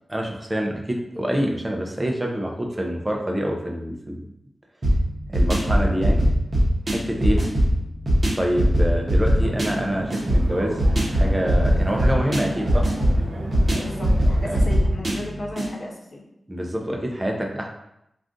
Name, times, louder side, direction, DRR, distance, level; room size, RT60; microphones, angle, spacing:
voice 1, 0.1-4.2 5.3-6.3 6.9-7.4 8.4-10.8 11.1-12.9 14.4-14.6 16.5-17.7, equal, 20° right, 1 dB, 0.5 m, -26 dB
sound 1, 4.8-15.7, equal, 50° right, 0.8 m, -21 dB
sound 2, 9.3-14.7, right 1 dB, 85° right, 0.6 m, -33 dB
voice 2, 13.7-16.2, left 1 dB, 55° left, -1 dB, 0.6 m, -35 dB
2.5 x 2.3 x 3.6 m, 0.82 s
wide cardioid pair, 90°, 0 cm